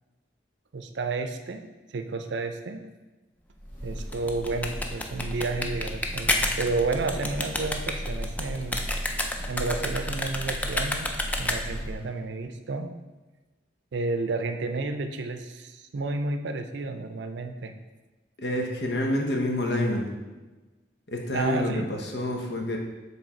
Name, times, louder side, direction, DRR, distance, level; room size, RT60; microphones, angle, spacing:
voice 1, 0.7-1.6 1.9-2.9 3.8-8.9 9.5-12.9 13.9-17.7 21.3-21.9, right 3 dB, 75° right, 7 dB, 0.5 m, -31 dB
Breathing / Bird, 3.5-12.1, equal, 45° left, 2.1 m, -36 dB
sound 1, 4.0-11.9, left 1 dB, 10° left, 0.4 m, -30 dB
voice 2, 18.4-20.1 21.1-22.8, left 1 dB, 65° left, 1 dB, 1.0 m, -28 dB
7.1 x 3.3 x 4.3 m, 1.2 s
head